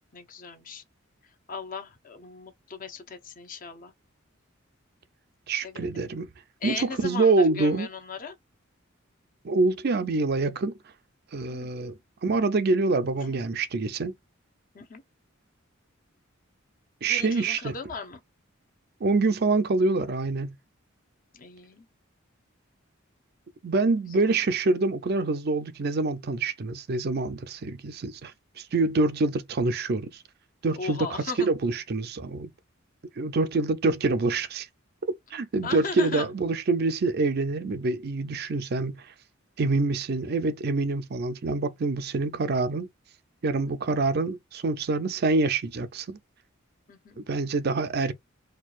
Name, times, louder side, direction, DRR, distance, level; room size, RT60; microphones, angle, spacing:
voice 1, 0.1-0.8 1.5-3.9 5.6-6.0 6.6-8.3 11.5-11.7 13.2-13.4 14.7-15.0 17.0-18.2 21.3-21.9 30.7-31.5 35.6-36.3 43.7-43.8 46.9-47.2, left 5 dB, 40° left, 0.7 m, -37 dB
voice 2, 5.5-6.3 6.6-7.9 9.4-10.8 11.3-11.9 12.2-14.1 17.0-17.7 19.0-20.6 23.6-30.2 30.6-32.5 33.2-34.7 35.3-39.1 39.6-42.9 43.4-46.2 47.2-48.1, right 3 dB, 50° right, 0.5 m, -26 dB
4.4 x 2.4 x 2.4 m
head